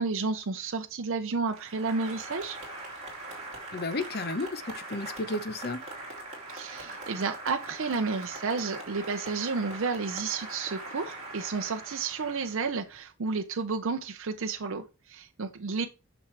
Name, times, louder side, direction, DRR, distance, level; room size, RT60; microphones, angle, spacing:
voice 1, 0.0-2.6 6.5-15.9, right 4 dB, 65° right, 0.6 m, -31 dB
Applause, 1.5-13.0, right 2 dB, 30° right, 2.7 m, -42 dB
voice 2, 3.7-5.8, left 2 dB, 45° left, 0.8 m, -33 dB
8.9 x 6.1 x 3.3 m
head